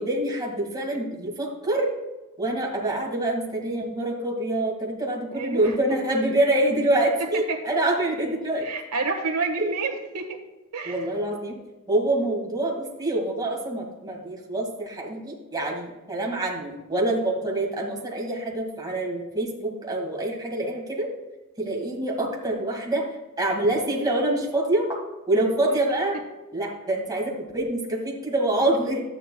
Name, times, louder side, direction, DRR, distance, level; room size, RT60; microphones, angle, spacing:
voice 1, 0.0-1.9 2.4-8.7 9.6-9.7 10.9-11.5 11.9-21.1 21.6-23.0 23.4-24.9 25.3-26.2 26.5-29.0, right 1 dB, 20° right, -1 dB, 1.8 m, -26 dB
voice 2, 5.3-5.6 7.2-7.6 8.6-10.4 10.7-11.0, right 4 dB, 70° right, 3 dB, 1.4 m, -29 dB
12.5 x 9.0 x 2.2 m, 1.1 s
head